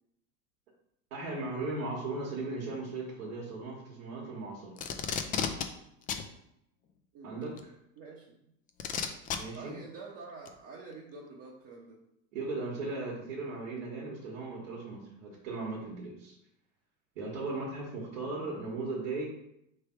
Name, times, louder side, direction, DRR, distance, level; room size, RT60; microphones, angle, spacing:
voice 1, 1.1-4.8 7.2-7.6 9.4-9.7 12.3-16.3 17.1-19.3, right 3 dB, 75° right, -4 dB, 1.4 m, -37 dB
Packing tape duct tape, 4.8-5.7 6.1-6.2 7.6-7.7 8.8-9.4 10.5-10.6, left 7 dB, 25° left, 0.3 m, -32 dB
voice 2, 8.0-8.4 9.5-12.0, right 3 dB, 40° right, -3 dB, 0.9 m, -47 dB
3.4 x 3.4 x 4.4 m, 0.79 s
hypercardioid pair, 95°, 39 cm